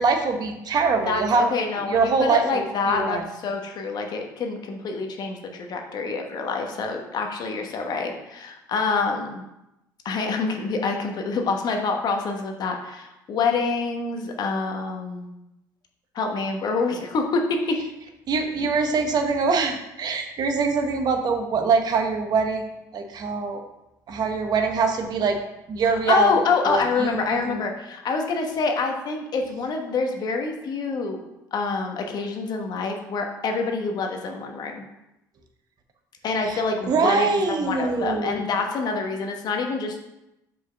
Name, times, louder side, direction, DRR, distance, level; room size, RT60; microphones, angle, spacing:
voice 1, 0.0-1.5 1.9-3.2 18.3-23.6 24.1-25.4 25.7-26.3 26.7-27.6 36.5-36.6 36.9-38.4, right 4 dB, 50° right, 5 dB, 1.0 m, -23 dB
voice 2, 1.1-9.4 10.0-15.3 16.1-17.8 25.8-31.2 31.5-34.9 36.2-40.0, left 4 dB, 50° left, 3 dB, 1.2 m, -26 dB
5.2 x 4.5 x 5.7 m, 0.90 s
supercardioid pair, 80°, 9 cm